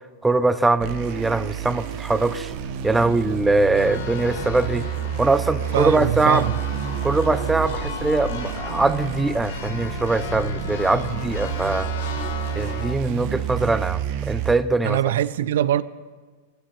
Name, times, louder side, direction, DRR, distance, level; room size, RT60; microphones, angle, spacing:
voice 1, 0.2-2.5 2.8-4.9 5.2-6.5 7.0-11.9 12.6-15.0, right 3 dB, 5° right, 0.4 m, -22 dB
sound 1, 0.8-14.5, right 9 dB, 50° right, 0.8 m, -30 dB
Church bell, 3.8-13.0, left 7 dB, 75° left, 0.9 m, -35 dB
voice 2, 5.7-6.5 14.8-15.8, right 12 dB, 75° right, 0.4 m, -22 dB
15.0 x 11.0 x 3.2 m
supercardioid pair, 145°, 0 cm